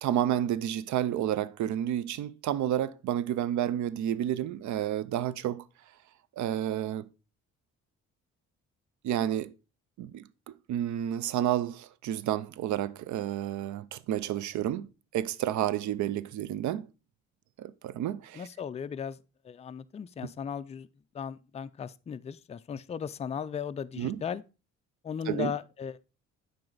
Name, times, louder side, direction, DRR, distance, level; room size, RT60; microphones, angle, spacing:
voice 1, 0.0-5.6 6.4-7.1 9.0-9.5 10.0-16.9 17.6-18.4 24.0-24.2 25.3-25.5, right 11 dB, 70° right, 0.5 m, -30 dB
voice 2, 18.3-19.2 19.4-20.9 21.1-24.4 25.0-26.0, left 7 dB, 20° left, 0.3 m, -36 dB
7.6 x 4.9 x 3.9 m
cardioid pair, 90°, 30 cm